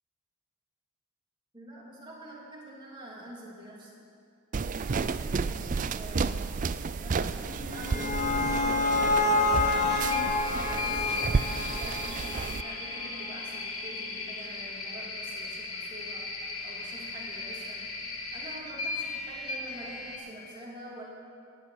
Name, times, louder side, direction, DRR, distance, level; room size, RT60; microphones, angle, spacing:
voice 1, 1.5-3.9 4.7-7.4 7.7-10.0 10.5-12.3 12.6-16.3 16.6-17.9 18.3-21.0, right 1 dB, 20° right, -4 dB, 3.0 m, -46 dB
sound 1, 4.5-12.6, right 4 dB, 40° right, 0.4 m, -32 dB
sound 2, 7.5-12.7, left 3 dB, 35° left, 1.3 m, -28 dB
sound 3, 9.7-20.2, left 3 dB, 80° left, 2.0 m, -37 dB
18.5 x 6.8 x 8.7 m, 2.4 s
head